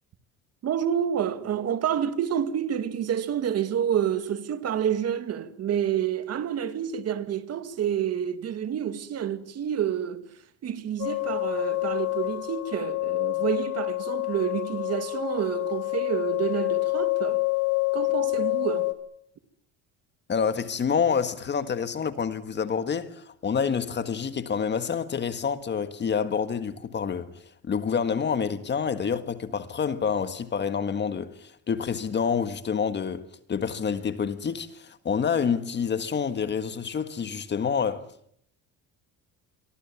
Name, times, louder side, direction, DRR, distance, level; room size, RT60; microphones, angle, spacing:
voice 1, 0.6-10.2 10.6-17.4 17.9-18.9, right 9 dB, 45° right, 2.1 m, -28 dB
sound 1, 11.0-18.9, left 24 dB, 80° left, 3.8 m, -27 dB
voice 2, 20.3-27.3 27.6-38.0, left 6 dB, 30° left, 1.7 m, -28 dB
27.0 x 23.5 x 7.2 m
cardioid pair, 135°, 34 cm